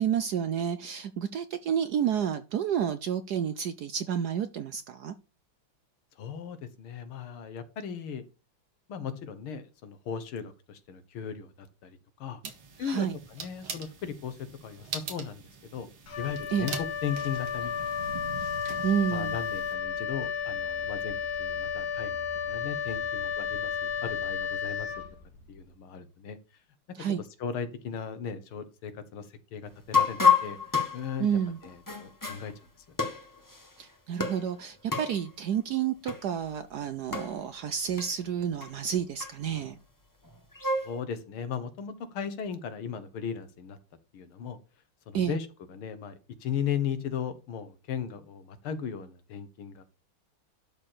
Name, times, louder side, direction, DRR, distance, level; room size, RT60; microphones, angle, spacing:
voice 1, 0.0-5.1 12.8-13.2 16.5-16.7 18.8-19.4 27.0-27.2 31.2-31.6 33.8-39.8 45.1-45.3, right 8 dB, 70° right, 1.0 m, -30 dB
voice 2, 6.2-8.2 8.9-12.4 12.8-15.4 15.7-15.9 16.2-17.9 19.1-23.7 24.0-24.9 25.5-26.4 27.0-29.3 29.5-30.6 30.9-31.3 31.6-32.5 33.0-33.1 40.8-43.8 44.1-44.6 45.1-49.8, left 7 dB, 80° left, 2.1 m, -37 dB
sound 1, 12.4-19.7, right 6 dB, 90° right, 2.7 m, -43 dB
Wind instrument woodwind instrument, 16.1-25.5, left 7 dB, 50° left, 1.7 m, -33 dB
sound 2, 29.9-32.5 33.0-33.7 34.2-34.5 34.9-35.2 36.0-36.2 36.5-36.6 37.1-37.4 38.0-38.1 38.6-38.7 39.2-39.6 40.3-41.0, left 5 dB, 10° left, 1.2 m, -28 dB
12.0 x 4.4 x 6.6 m
omnidirectional pair, 2.3 m